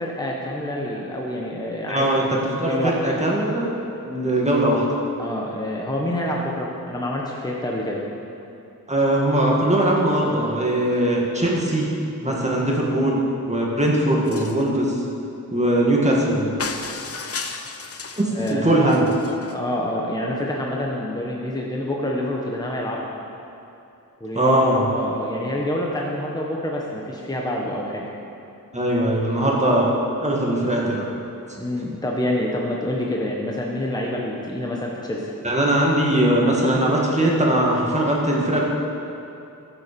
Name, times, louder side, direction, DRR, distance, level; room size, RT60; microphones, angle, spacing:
voice 1, 0.0-2.1 2.4-2.9 5.2-8.0 12.2-12.5 18.3-19.0 19.5-23.1 24.2-24.6 24.9-28.0 31.6-35.3, left 1 dB, 10° left, -2 dB, 1.2 m, -27 dB
voice 2, 1.9-2.2 2.6-3.7 4.0-4.8 8.9-11.9 12.2-13.2 13.5-15.0 15.5-16.5 18.2-19.1 24.3-24.9 28.7-29.9 30.2-31.1 35.4-38.7, right 1 dB, 20° right, -3 dB, 2.0 m, -20 dB
sound 1, 14.3-14.7 16.6-18.6 18.9-19.6, left 4 dB, 45° left, 0.8 m, -33 dB
14.0 x 7.2 x 6.9 m, 2.8 s
wide cardioid pair, 130°, 34 cm